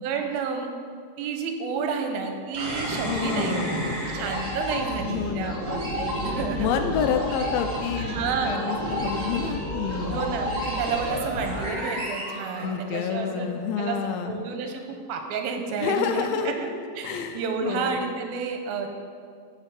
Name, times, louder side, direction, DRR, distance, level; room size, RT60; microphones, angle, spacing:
voice 1, 0.0-0.7 1.2-6.7 8.0-8.7 10.1-13.5 13.8-14.0 14.3-16.7 16.9-18.9, right 5 dB, 90° right, 4 dB, 2.7 m, -30 dB
sound 1, 2.5-13.2, equal, 60° right, 0.4 m, -31 dB
voice 2, 3.0-4.0 5.1-5.6 6.6-8.2 8.4-10.3 12.6-14.4 15.8-16.5 17.0-18.0, left 7 dB, 85° left, 6 dB, 2.5 m, -28 dB
11.0 x 4.2 x 7.4 m, 2.2 s
omnidirectional pair, 4.2 m